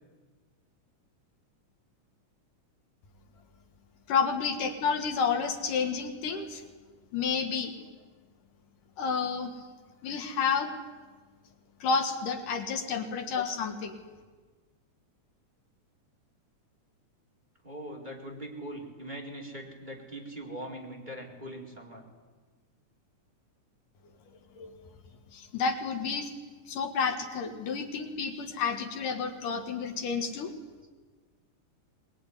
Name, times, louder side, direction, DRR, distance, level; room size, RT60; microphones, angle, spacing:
voice 1, 4.1-6.6 7.1-7.7 9.0-9.6 10.0-10.7 11.8-14.0 24.5-24.7 25.3-26.3 26.7-30.5, left 5 dB, 75° left, 6 dB, 3.3 m, -30 dB
voice 2, 17.6-22.0, right 1 dB, 15° right, 0 dB, 3.9 m, -41 dB
21.5 x 21.5 x 10.0 m, 1.4 s
omnidirectional pair, 3.7 m